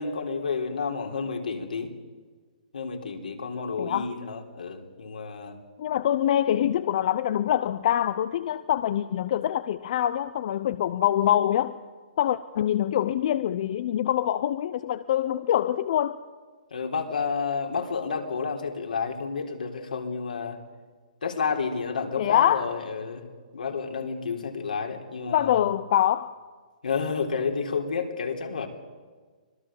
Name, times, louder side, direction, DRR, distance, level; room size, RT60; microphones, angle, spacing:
voice 1, 0.0-1.9 2.7-5.6 16.7-20.6 21.2-23.3 23.5-25.6 26.8-28.7, left 5 dB, 85° left, 3 dB, 3.7 m, -30 dB
voice 2, 3.8-4.1 5.8-11.7 12.2-16.2 22.2-22.7 25.3-26.3, left 11 dB, 50° left, 12 dB, 0.8 m, -24 dB
25.5 x 19.0 x 7.4 m, 1.5 s
hypercardioid pair, 145°, 4 cm